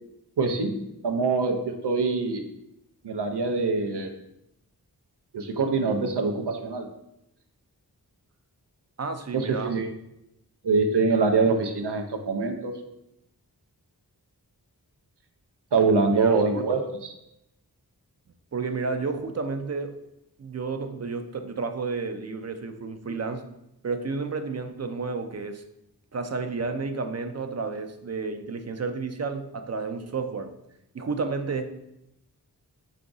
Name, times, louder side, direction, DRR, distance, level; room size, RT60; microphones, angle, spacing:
voice 1, 0.4-2.4 3.0-4.1 5.3-6.9 9.3-9.9 10.6-12.7 15.7-17.1, right 4 dB, 90° right, 5 dB, 0.6 m, -24 dB
voice 2, 9.0-9.8 16.1-16.6 18.5-19.9 20.4-23.5 23.8-25.6 26.1-30.5 30.9-31.7, right 4 dB, 40° right, 7 dB, 0.4 m, -31 dB
4.6 x 2.4 x 3.8 m, 0.84 s
wide cardioid pair, 40°, 39 cm